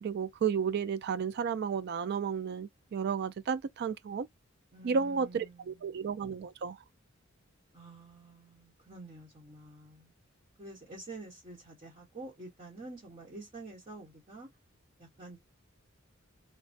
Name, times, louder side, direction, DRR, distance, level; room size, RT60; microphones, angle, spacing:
voice 1, 0.0-4.3 4.8-6.8, right 6 dB, 50° right, 0.3 m, -32 dB
voice 2, 4.7-6.0 7.7-10.1 10.6-14.5 15.0-15.4, right 2 dB, 35° right, 1.0 m, -48 dB
3.2 x 2.1 x 2.6 m
head